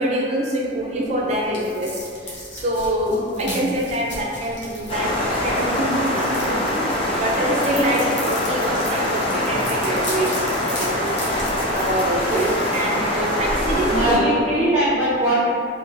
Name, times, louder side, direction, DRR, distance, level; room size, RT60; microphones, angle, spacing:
voice 1, 0.0-14.8, right 1 dB, 40° right, -2 dB, 0.4 m, -25 dB
sound 1, 0.8-13.5, left 1 dB, 70° left, 0.7 m, -37 dB
sound 2, 4.9-14.2, left 1 dB, 30° left, 0.4 m, -23 dB
voice 2, 13.9-15.5, right 1 dB, 10° right, -14 dB, 0.8 m, -20 dB
3.0 x 2.1 x 2.5 m, 2.2 s
head